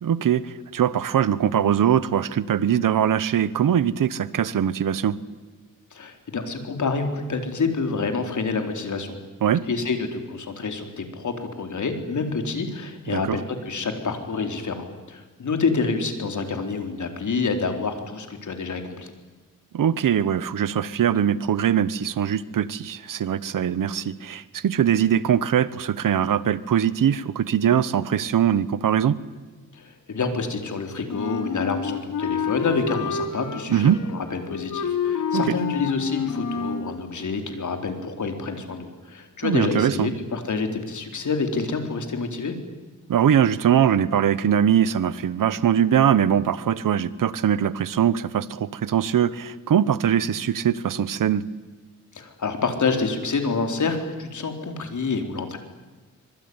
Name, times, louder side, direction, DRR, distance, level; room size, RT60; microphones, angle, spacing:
voice 1, 0.0-5.2 9.4-9.6 13.1-13.4 19.7-29.2 33.7-34.0 35.3-35.5 39.4-40.1 43.1-51.4, right 9 dB, 90° right, 17 dB, 1.1 m, -22 dB
voice 2, 5.9-9.2 9.7-19.1 29.7-42.5 52.1-55.6, left 4 dB, 65° left, 5 dB, 4.2 m, -28 dB
Wind instrument woodwind instrument, 31.1-36.9, left 7 dB, 85° left, 3.5 m, -28 dB
25.0 x 24.0 x 9.7 m, 1.3 s
cardioid pair, 85°, 32 cm